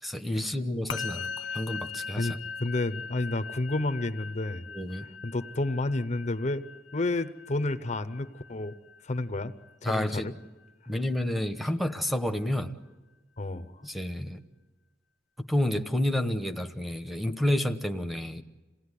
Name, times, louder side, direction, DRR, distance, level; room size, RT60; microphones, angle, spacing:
voice 1, 0.0-2.4 4.7-5.1 9.8-10.3 10.9-12.8 13.8-14.4 15.4-18.4, left 1 dB, ahead, 5 dB, 1.0 m, -30 dB
Musical instrument, 0.9-10.4, left 5 dB, 80° left, 0.8 m, -41 dB
voice 2, 2.1-4.6 5.2-6.6 6.9-8.7 9.0-9.5 9.8-10.3 13.4-13.8, left 2 dB, 35° left, 11 dB, 0.7 m, -30 dB
27.5 x 18.0 x 9.9 m, 1.2 s
head